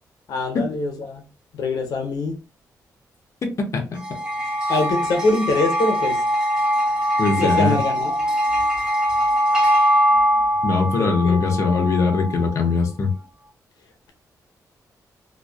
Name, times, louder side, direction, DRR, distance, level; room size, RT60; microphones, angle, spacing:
voice 1, 0.3-1.2 1.5-2.4 4.7-6.2 7.3-8.2 11.0-11.5, left 3 dB, 90° left, 0.7 m, -24 dB
sound 1, 4.0-12.6, equal, 10° right, 0.7 m, -22 dB
voice 2, 7.2-7.8 10.6-13.1, left 4 dB, 50° left, 0.6 m, -21 dB
2.5 x 2.2 x 2.3 m
cardioid pair, 110°, 7 cm